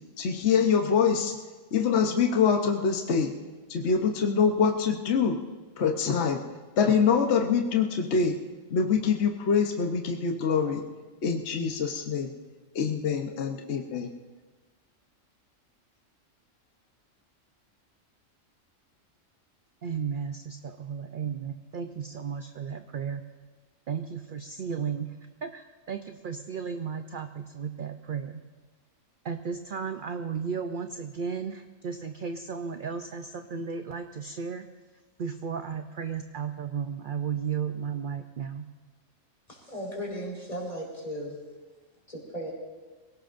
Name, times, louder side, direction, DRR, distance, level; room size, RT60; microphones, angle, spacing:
voice 1, 0.2-1.3 1.7-3.3 3.7-5.4 5.8-6.4 6.8-8.3 8.7-10.8 11.2-12.3 12.7-14.1, left 6 dB, 60° left, 3 dB, 1.2 m, -25 dB
voice 2, 19.8-23.2 23.9-28.4 29.2-34.7 35.2-38.7, right 6 dB, 50° right, 7 dB, 0.7 m, -34 dB
voice 3, 39.5-41.4 42.1-42.5, equal, 30° left, -3 dB, 4.3 m, -36 dB
25.5 x 17.5 x 2.6 m, 1.3 s
omnidirectional pair, 1.3 m